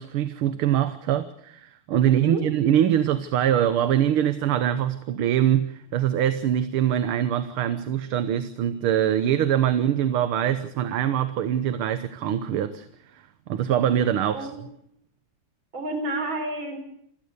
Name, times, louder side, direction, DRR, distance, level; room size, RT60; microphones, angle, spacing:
voice 1, 0.0-12.9 13.1-14.5, right 10 dB, 80° right, 1.9 m, -23 dB
voice 2, 2.0-2.4 14.3-14.6 15.7-16.8, right 2 dB, 65° right, 5.2 m, -30 dB
27.0 x 16.5 x 6.6 m
omnidirectional pair, 2.3 m